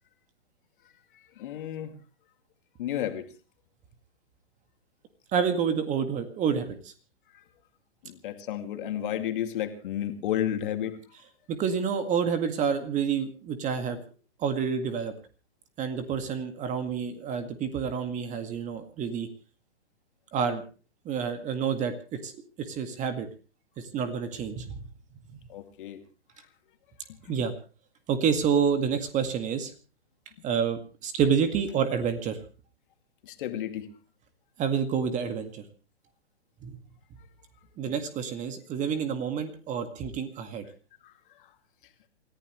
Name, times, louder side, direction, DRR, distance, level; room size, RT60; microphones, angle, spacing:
voice 1, 1.4-1.9 2.8-3.3 8.0-11.0 25.5-26.0 33.2-33.9 37.8-37.9 41.0-41.1, left 11 dB, 50° left, 6 dB, 2.5 m, -32 dB
voice 2, 5.3-6.9 11.5-14.0 14.4-15.1 15.8-19.3 20.3-20.6 21.1-22.3 22.6-23.3 23.9-24.7 27.3-27.5 28.1-29.7 30.4-32.4 34.6-35.6 36.6-36.8 37.8-40.6, right 7 dB, 20° right, 8 dB, 1.9 m, -28 dB
28.0 x 15.0 x 3.2 m, 0.36 s
hypercardioid pair, 125°, 33 cm